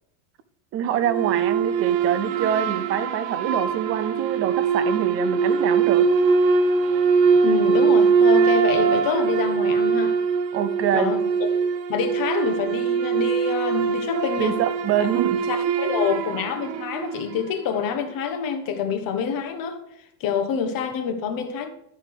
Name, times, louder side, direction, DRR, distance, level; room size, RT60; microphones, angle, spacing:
voice 1, 0.7-6.1 10.5-11.1 14.4-15.4 15.8-15.9, right 9 dB, 30° right, 0.4 m, -25 dB
sound 1, 1.0-17.6, right 5 dB, 85° right, 1.2 m, -22 dB
voice 2, 7.4-10.2 10.9-11.2 11.9-14.6 15.4-19.8 20.2-21.7, left 7 dB, 45° left, 1.3 m, -27 dB
11.5 x 4.5 x 5.2 m
supercardioid pair, 140°, 50 cm